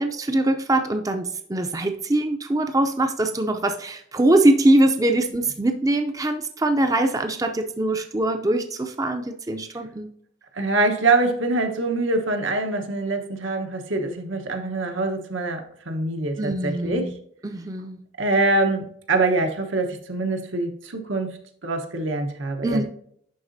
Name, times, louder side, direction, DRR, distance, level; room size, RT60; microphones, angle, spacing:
voice 1, 0.0-10.1 16.4-17.1 17.4-18.0 22.6-22.8, right 1 dB, 20° right, 6 dB, 0.5 m, -22 dB
voice 2, 10.5-17.1 18.2-22.8, right 2 dB, 90° right, 4 dB, 1.1 m, -24 dB
11.0 x 3.9 x 2.7 m, 0.66 s
head